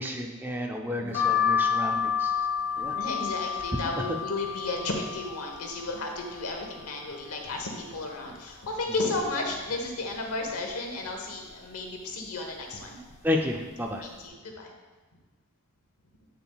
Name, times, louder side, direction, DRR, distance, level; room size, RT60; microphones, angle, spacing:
voice 1, 0.0-2.3 2.8-3.0 13.2-14.0, left 1 dB, 10° right, 1 dB, 0.4 m, -31 dB
voice 2, 0.8-1.4 2.8-13.0 14.0-14.7, left 2 dB, 90° left, 2 dB, 1.1 m, -33 dB
sound 1, 1.1-6.8 7.3-8.0 8.4-8.5 8.7-9.8 10.3-10.7 11.5-11.8 12.6-12.8 13.1-13.3, left 7 dB, 50° left, 1.1 m, -30 dB
8.0 x 6.8 x 2.3 m, 1.3 s
head